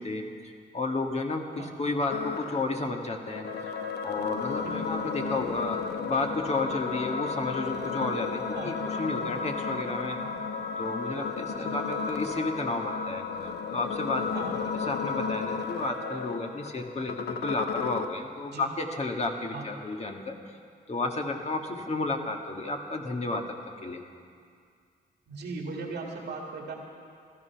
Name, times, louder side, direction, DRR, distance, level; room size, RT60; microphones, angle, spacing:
voice 1, 0.0-3.8 4.0-5.8 6.1-10.2 10.8-13.2 13.7-20.6 20.9-23.4 23.8-24.0, left 2 dB, 40° left, 3 dB, 1.7 m, -32 dB
sound 1, 2.1-18.1, left 5 dB, 75° left, 0.9 m, -33 dB
voice 2, 25.3-26.7, right 3 dB, 85° right, 0 dB, 1.9 m, -38 dB
15.0 x 13.0 x 5.9 m, 2.2 s
cardioid pair, 70°, 17 cm